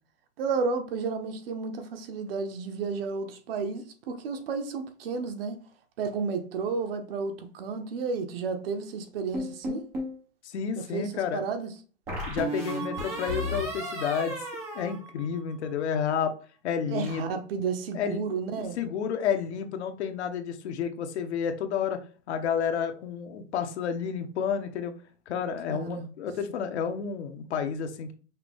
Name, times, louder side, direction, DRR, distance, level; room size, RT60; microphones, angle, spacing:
voice 1, 0.4-5.6 6.0-9.8 10.8-11.7 16.9-18.8 25.7-26.1, right 5 dB, 55° right, 0.9 m, -32 dB
sound 1, 9.3-10.2 12.1-15.7, equal, 10° right, 0.4 m, -34 dB
voice 2, 10.4-11.5 12.3-14.3 14.7-16.3 16.6-17.2 17.9-18.2 18.8-22.0 22.3-24.9 25.3-28.1, left 7 dB, 70° left, 0.9 m, -30 dB
5.7 x 2.3 x 3.4 m
supercardioid pair, 165°, 35 cm